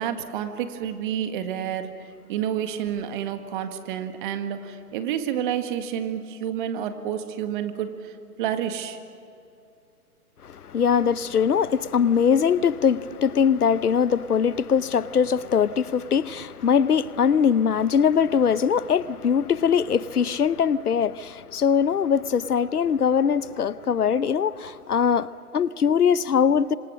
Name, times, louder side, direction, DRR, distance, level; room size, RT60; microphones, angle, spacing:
voice 1, 0.0-1.9 2.3-9.0, right 9 dB, 35° right, 1.9 m, -29 dB
voice 2, 10.4-26.7, left 7 dB, 75° left, 0.9 m, -22 dB
26.5 x 26.0 x 6.3 m
figure-of-eight pair, 135°, 45 cm